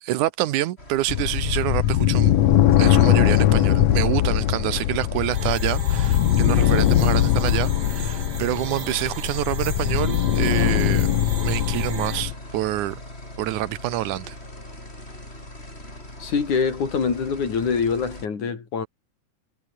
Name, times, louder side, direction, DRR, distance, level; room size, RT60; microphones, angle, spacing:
voice 1, 0.0-2.4 2.8-11.2 11.4-13.0 13.4-14.4, right 15 dB, 85° right, 2.4 m, -27 dB
sound 1, 0.8-18.3, left 1 dB, 20° left, 7.6 m, -41 dB
sound 2, 1.1-12.3, left 12 dB, 65° left, 2.1 m, -21 dB
sound 3, 5.3-12.2, right 6 dB, 35° right, 2.4 m, -38 dB
voice 2, 16.2-18.9, left 6 dB, 80° left, 5.3 m, -24 dB
omnidirectional pair, 3.4 m